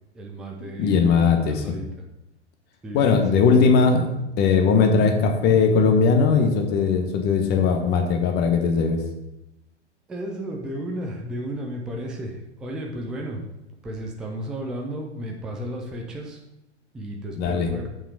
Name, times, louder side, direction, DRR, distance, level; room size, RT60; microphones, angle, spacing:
voice 1, 0.1-1.9 2.8-3.5 10.1-13.4 13.8-16.4 16.9-17.9, right 1 dB, ahead, 0 dB, 0.3 m, -33 dB
voice 2, 0.8-1.6 2.9-9.0 17.4-17.7, left 5 dB, 30° left, 4 dB, 1.2 m, -19 dB
7.5 x 5.6 x 4.7 m, 0.92 s
figure-of-eight pair, 105°, 36 cm